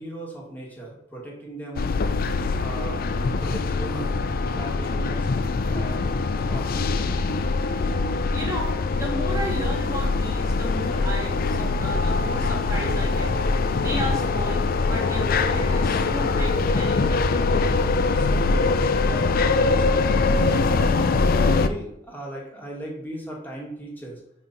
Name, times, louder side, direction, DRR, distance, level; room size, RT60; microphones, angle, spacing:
voice 1, 0.0-1.9 2.6-3.0 3.4-4.1 4.5-5.3 5.7-6.1 6.5-7.1 18.1-21.0 21.4-24.2, right 1 dB, 10° left, -3 dB, 2.0 m, -37 dB
sound 1, 1.8-21.7, left 3 dB, 50° left, 0.4 m, -23 dB
voice 2, 8.3-13.3 13.8-17.5, right 1 dB, 20° right, -1 dB, 1.8 m, -34 dB
6.1 x 4.3 x 5.3 m, 0.79 s
head